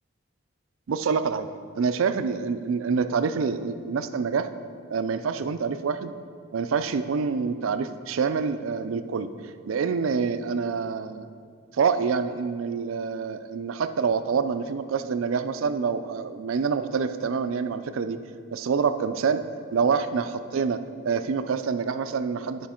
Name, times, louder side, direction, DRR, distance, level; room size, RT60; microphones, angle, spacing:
voice 1, 0.9-1.5 1.8-4.5 4.9-6.1 6.5-9.3 9.7-11.3 11.7-18.2 18.5-19.4 19.7-22.7, right 5 dB, 85° right, 11 dB, 0.4 m, -26 dB
10.5 x 5.1 x 4.3 m, 2.1 s
head